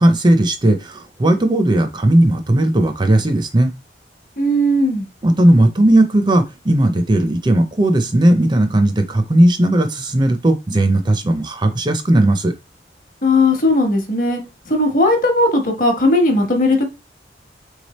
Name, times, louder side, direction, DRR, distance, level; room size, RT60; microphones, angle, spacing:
voice 1, 0.0-3.7 5.2-12.5, right 1 dB, 25° right, 0.5 m, -16 dB
voice 2, 4.4-5.1 13.2-16.8, left 1 dB, 45° left, 1.1 m, -17 dB
3.4 x 3.3 x 4.1 m
head